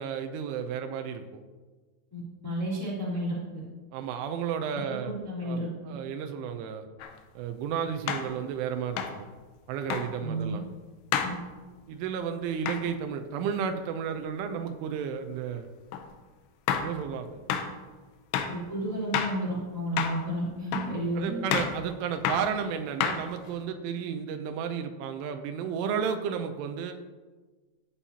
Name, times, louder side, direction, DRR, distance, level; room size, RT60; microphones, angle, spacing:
voice 1, 0.0-1.4 3.9-5.1 5.4-5.6 5.9-6.9 7.4-9.3 9.7-10.6 11.9-15.7 16.8-17.4 21.2-27.0, right 7 dB, 85° right, 6 dB, 3.1 m, -32 dB
voice 2, 2.1-3.6 4.9-5.9 10.2-10.6 11.2-11.3 18.5-21.6, right 1 dB, 5° left, -7 dB, 2.2 m, -32 dB
sound 1, 7.0-7.1 8.1-8.3 9.0-9.2 9.9-10.1 11.1-11.4 12.7-12.8 15.9-16.1 16.7-16.9 17.5-17.7 18.3-18.6 19.1-19.4 20.0-20.2 20.7-21.0 21.5-21.8 22.2-22.5 23.0-23.5, left 7 dB, 85° left, 2.4 m, -29 dB
14.0 x 8.7 x 2.8 m, 1.3 s
omnidirectional pair, 5.7 m